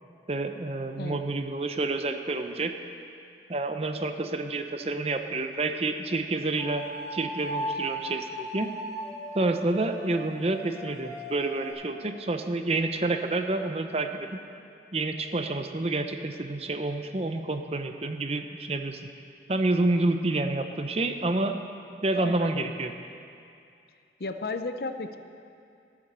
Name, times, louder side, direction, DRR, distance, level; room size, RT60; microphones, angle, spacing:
voice 1, 0.3-2.8 3.5-6.8 7.1-8.8 9.3-14.4 14.9-19.0 19.5-21.6 22.0-22.9, right 2 dB, 35° right, 7 dB, 0.6 m, -28 dB
sound 1, 3.8-4.5 6.6-11.7, equal, ahead, 3.3 m, -37 dB
voice 2, 22.2-22.7 24.2-25.2, left 3 dB, 60° left, 8 dB, 0.6 m, -34 dB
14.0 x 8.8 x 6.7 m, 2.5 s
head